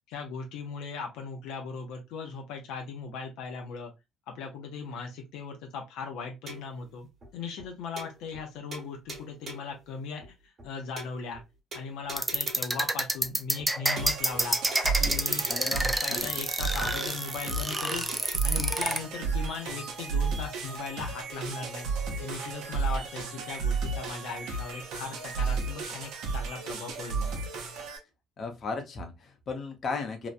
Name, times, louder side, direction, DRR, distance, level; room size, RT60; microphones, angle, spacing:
voice 1, 0.1-3.9 4.3-10.2 10.6-11.4 11.7-14.6 15.0-15.5 15.7-18.1 18.4-21.9 22.2-27.4, left 5 dB, 80° left, 0.6 m, -38 dB
sound 1, 6.5-6.8 7.2-7.3 7.6-7.7 8.0-8.5 8.7-9.8 10.2-10.3 10.6-10.7 11.0-11.4 11.7-12.8 13.2-13.3 13.6-13.7 14.0-14.5 14.7-15.8 16.2-16.3 16.6-16.7 17.0-17.4 17.7-18.4, right 1 dB, 40° right, 1.2 m, -44 dB
sound 2, 12.2-19.0, right 1 dB, 10° right, 0.4 m, -28 dB
sound 3, 14.0-28.0, right 4 dB, 75° right, 0.7 m, -33 dB
voice 2, 15.5-15.8 16.1-16.3 28.4-30.3, left 4 dB, 45° left, 0.8 m, -35 dB
2.9 x 2.1 x 2.4 m
cardioid pair, 95°, 0 cm